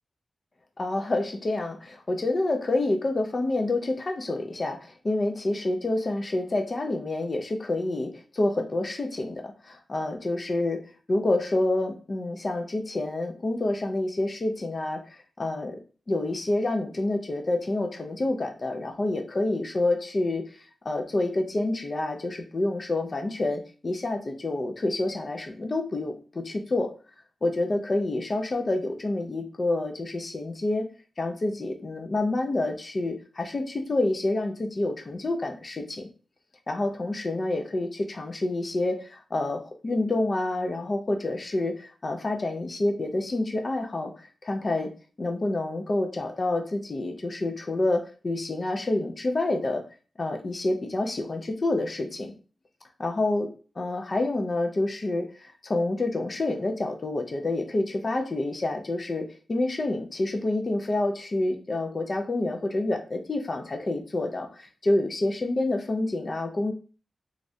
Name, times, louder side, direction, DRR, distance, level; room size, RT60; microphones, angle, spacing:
voice 1, 0.8-10.8 11.1-15.8 16.1-20.4 20.8-26.9 27.4-30.9 31.2-36.1 36.7-44.1 44.4-44.9 45.2-49.8 50.2-52.3 53.0-53.5 53.8-66.7, left 2 dB, 40° left, 5 dB, 0.5 m, -28 dB
3.2 x 2.5 x 2.6 m, 0.37 s
wide cardioid pair, 100°, 0 cm